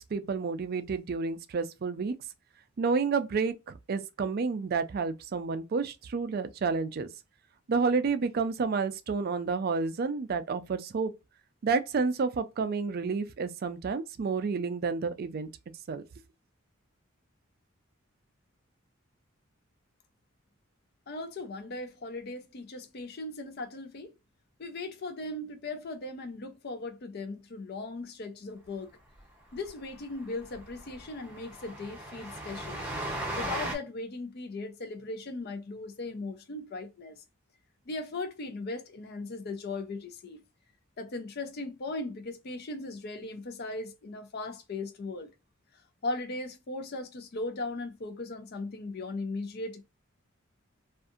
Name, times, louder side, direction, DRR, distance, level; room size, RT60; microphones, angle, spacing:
voice 1, 0.0-2.1 2.8-7.1 7.7-11.1 11.6-15.5 15.9-16.0, right 4 dB, 45° right, 0.3 m, -30 dB
voice 2, 21.1-24.1 24.6-28.9 29.5-32.8 33.3-37.2 37.9-40.4 41.0-45.3 46.0-49.8, left 2 dB, 50° left, 0.4 m, -38 dB
Train, 29.2-29.3 29.5-29.7 29.9-30.0 30.4-33.7, right 1 dB, 5° right, 0.6 m, -37 dB
2.6 x 2.4 x 2.4 m
head